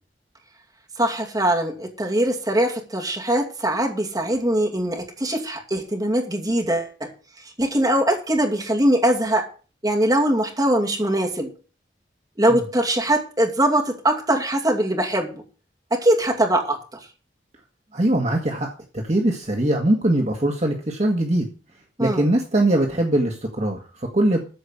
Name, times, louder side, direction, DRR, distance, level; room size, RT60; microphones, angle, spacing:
voice 1, 1.0-9.5 9.8-11.5 12.4-15.3 15.9-16.8 22.0-22.3, right 1 dB, 20° right, 0 dB, 2.6 m, -22 dB
voice 2, 17.9-21.5 22.0-24.4, right 1 dB, 40° right, 1 dB, 1.6 m, -21 dB
14.0 x 5.2 x 8.4 m, 0.38 s
head